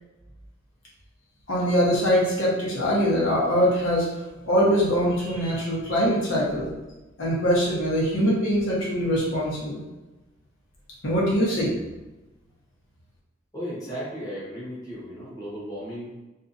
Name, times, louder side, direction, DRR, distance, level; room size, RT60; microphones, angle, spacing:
voice 1, 1.5-4.1 4.4-6.7 7.2-9.8 11.0-11.7, equal, 85° left, -6 dB, 1.0 m, -23 dB
voice 2, 13.5-16.1, equal, 20° left, -7 dB, 1.0 m, -35 dB
2.7 x 2.4 x 2.5 m, 1.1 s
head